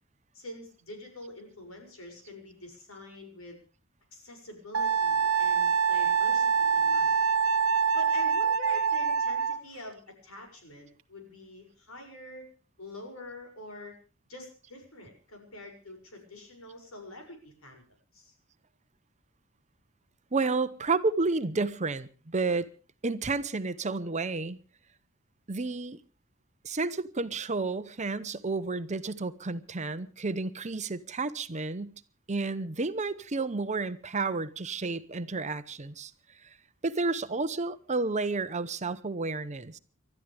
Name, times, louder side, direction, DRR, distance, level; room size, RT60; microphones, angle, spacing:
voice 1, 0.3-3.6 4.1-7.2 7.9-12.4 12.8-13.9 14.3-17.8 18.1-18.3, left 1 dB, 90° left, 6.6 m, -45 dB
Wind instrument woodwind instrument, 4.7-9.6, right 6 dB, 85° right, 1.1 m, -25 dB
voice 2, 20.3-22.7 23.0-24.6 25.5-26.0 26.6-31.9 32.3-36.1 36.8-39.8, right 3 dB, 35° right, 0.9 m, -31 dB
29.5 x 13.0 x 3.4 m
head